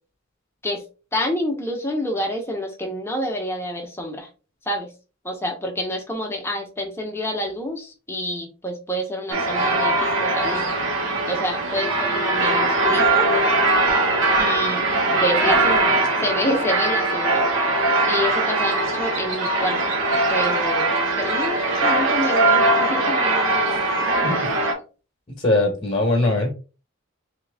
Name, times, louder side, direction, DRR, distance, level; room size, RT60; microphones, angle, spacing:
voice 1, 1.1-4.3 4.7-4.9 5.2-10.7 11.3-13.3 14.4-17.4 18.0-20.0 20.3-24.7, equal, 10° left, 1 dB, 0.9 m, -28 dB
sound 1, 9.3-24.7, right 2 dB, 65° right, 1.2 m, -21 dB
voice 2, 25.4-26.5, left 2 dB, 30° left, -1 dB, 1.1 m, -20 dB
3.6 x 3.0 x 3.4 m, 0.33 s
head